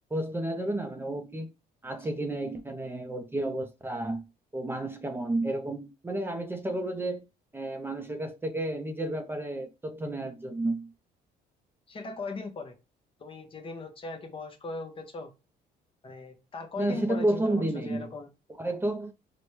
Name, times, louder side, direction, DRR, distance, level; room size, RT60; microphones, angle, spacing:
voice 1, 0.1-1.5 1.8-4.2 4.5-7.3 7.5-10.9 16.8-18.1 18.6-19.1, right 1 dB, 15° right, 0.5 m, -31 dB
voice 2, 11.9-12.7 13.2-15.3 16.0-18.3, left 3 dB, 30° left, 0.8 m, -39 dB
4.2 x 2.1 x 3.1 m
cardioid pair, 110°, 17 cm